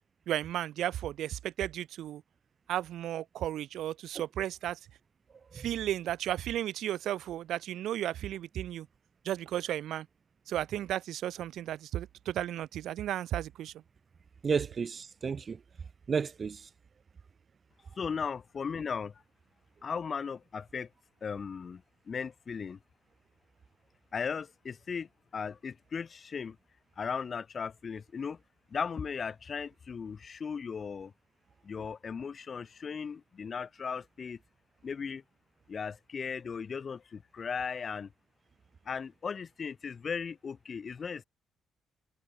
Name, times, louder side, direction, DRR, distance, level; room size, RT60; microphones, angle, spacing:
voice 1, 0.3-2.2 2.7-4.8 5.5-8.9 9.2-10.1 10.5-13.7, right 12 dB, 80° right, 1.0 m, -34 dB
voice 2, 14.4-15.6 16.1-16.7, right 6 dB, 40° right, 0.9 m, -32 dB
voice 3, 18.0-19.2 19.8-20.9 21.2-22.8 24.1-26.6 27.0-28.4 28.7-31.1 31.6-34.4 34.8-35.2 35.7-38.1 38.8-41.2, left 6 dB, 45° left, 0.8 m, -37 dB
cardioid pair, 90°, 0 cm